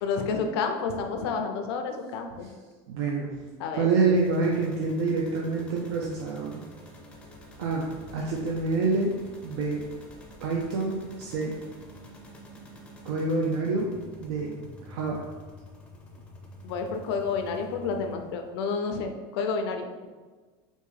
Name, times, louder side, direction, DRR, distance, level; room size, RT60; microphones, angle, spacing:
voice 1, 0.0-2.5 3.6-3.9 16.6-20.1, left 5 dB, 90° left, 5 dB, 0.5 m, -30 dB
voice 2, 2.9-3.4 3.7-6.6 7.6-9.2 9.4-9.9 10.4-11.6 13.0-13.9 14.2-14.6 14.8-15.3, right 3 dB, 85° right, -1 dB, 0.5 m, -27 dB
sound 1, 4.1-18.6, left 1 dB, 10° left, 0.4 m, -47 dB
3.4 x 2.6 x 3.2 m, 1.4 s
cardioid pair, 160°, 13 cm